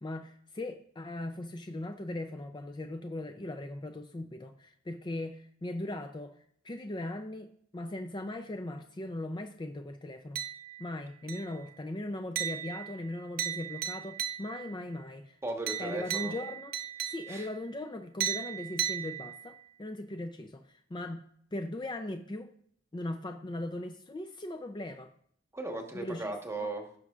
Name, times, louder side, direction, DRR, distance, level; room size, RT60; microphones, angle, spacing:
voice 1, 0.0-6.4 6.6-10.4 10.8-15.4 15.8-16.7 17.1-21.2 21.5-22.5 22.9-25.1 25.9-26.4, left 1 dB, 25° left, 6 dB, 0.5 m, -39 dB
sound 1, 10.3-10.9 11.3-11.7 12.3-14.8 15.7-17.6 18.2-19.6, right 9 dB, 50° right, 0.6 m, -36 dB
voice 2, 15.4-16.3 17.3-17.5 25.5-27.0, right 2 dB, 15° right, 3 dB, 1.2 m, -37 dB
16.0 x 6.1 x 2.4 m, 0.65 s
head